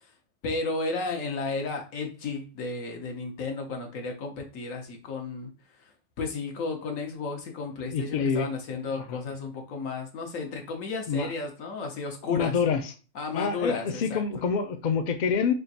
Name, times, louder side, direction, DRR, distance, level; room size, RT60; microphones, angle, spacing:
voice 1, 0.4-12.5 13.1-14.2, left 3 dB, 85° left, 3 dB, 1.3 m, -33 dB
voice 2, 7.9-8.5 9.1-9.2 11.1-11.3 12.3-12.9 13.3-15.5, left 6 dB, 65° left, 8 dB, 0.4 m, -26 dB
3.6 x 2.5 x 4.1 m, 0.34 s
omnidirectional pair, 1.3 m